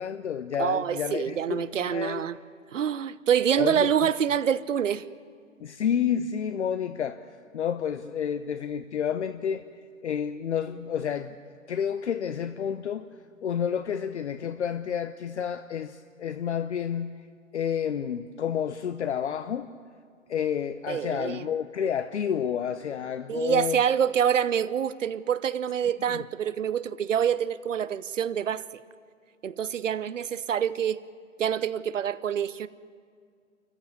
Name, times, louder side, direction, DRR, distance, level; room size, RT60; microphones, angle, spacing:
voice 1, 0.0-2.3 3.6-4.1 5.6-7.2 7.5-9.6 10.0-11.4 11.7-13.1 13.4-17.2 17.5-19.7 20.3-23.8 26.1-26.2, left 8 dB, 55° left, 0.8 m, -30 dB
voice 2, 0.6-2.4 2.7-5.0 20.9-21.5 23.3-28.7 29.4-31.0 31.4-32.7, right 8 dB, 65° right, 0.9 m, -26 dB
26.5 x 15.0 x 9.1 m
figure-of-eight pair, 140°, 40 cm